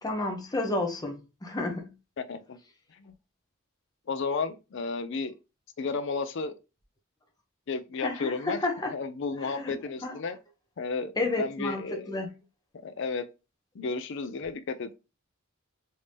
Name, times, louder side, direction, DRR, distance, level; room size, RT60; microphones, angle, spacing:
voice 1, 0.0-1.9 8.0-8.9 9.4-9.7 10.0-10.1 11.2-12.3, left 2 dB, 20° left, 0.7 m, -31 dB
voice 2, 2.2-2.6 2.9-3.2 4.1-5.3 5.8-6.5 7.7-8.6 8.9-10.4 10.8-12.2 12.8-13.3 13.7-15.0, left 4 dB, 60° left, 0.4 m, -33 dB
3.3 x 2.7 x 3.3 m
head